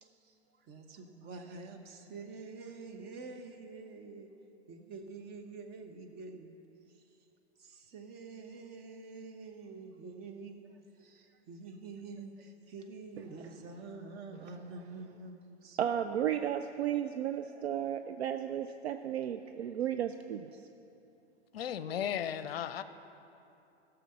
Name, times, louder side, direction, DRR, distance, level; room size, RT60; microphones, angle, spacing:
voice 1, 0.0-4.3 4.7-6.6 6.9-7.0 7.6-15.8, right 3 dB, 30° right, 5 dB, 1.0 m, -47 dB
voice 2, 15.8-20.6, right 10 dB, 70° right, 8 dB, 0.5 m, -34 dB
voice 3, 21.5-22.8, left 9 dB, 60° left, 13 dB, 0.6 m, -35 dB
16.0 x 6.9 x 5.6 m, 2.7 s
figure-of-eight pair, 100°, 33 cm